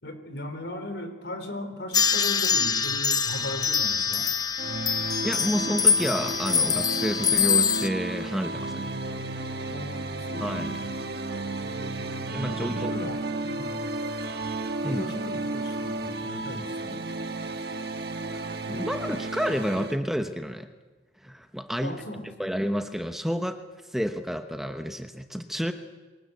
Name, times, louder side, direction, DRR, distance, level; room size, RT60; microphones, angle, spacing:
voice 1, 0.0-4.3 8.8-9.2 9.7-11.1 11.6-13.8 14.8-17.0 21.8-22.5, left 1 dB, 70° left, 7 dB, 4.1 m, -38 dB
sound 1, 1.9-7.9, left 6 dB, 20° left, 0.8 m, -24 dB
sound 2, 4.6-20.0, right 2 dB, 60° right, 1.5 m, -33 dB
voice 2, 5.2-8.9 10.4-10.8 12.3-12.9 14.8-15.0 18.7-20.7 21.2-22.0 22.2-23.6 23.9-25.7, equal, ahead, 6 dB, 1.0 m, -30 dB
23.5 x 19.5 x 8.2 m, 1.3 s
head